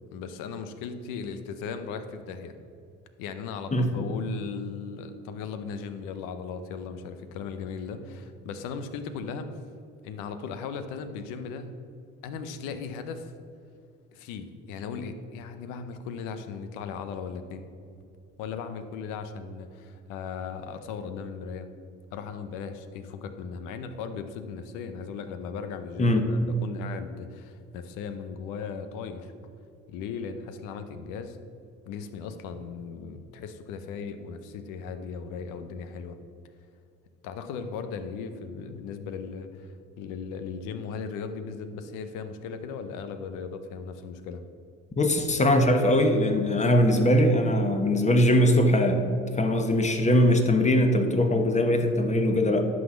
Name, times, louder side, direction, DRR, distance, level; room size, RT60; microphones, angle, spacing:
voice 1, 0.1-2.6 3.2-9.5 10.0-11.8 12.2-13.3 14.1-17.7 18.4-21.7 22.1-29.5 29.9-31.4 31.9-36.2 37.2-44.4, left 5 dB, 90° left, 9 dB, 0.9 m, -37 dB
voice 2, 45.0-49.0 49.4-52.6, left 1 dB, 25° left, 5 dB, 1.2 m, -21 dB
11.0 x 4.1 x 7.2 m, 2.4 s
cardioid pair, 90°, 30 cm